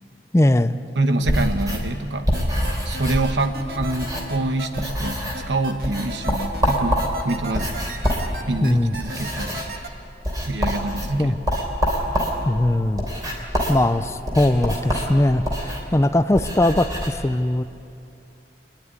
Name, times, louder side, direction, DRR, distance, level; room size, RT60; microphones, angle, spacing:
voice 1, 0.3-0.7 8.6-9.0 11.2-11.4 12.5-13.1 13.7-17.6, left 1 dB, 15° left, 12 dB, 0.4 m, -20 dB
voice 2, 1.0-2.3 2.8-5.2 5.5-7.8 8.5-9.6 10.4-11.4, right 2 dB, 90° right, 8 dB, 1.1 m, -25 dB
sound 1, 1.2-4.5 4.7-5.5 5.8-17.1, equal, 20° right, 3.1 m, -26 dB
sound 2, 2.3-9.9, right 1 dB, 55° right, 1.6 m, -35 dB
26.0 x 10.5 x 9.6 m, 2.6 s
head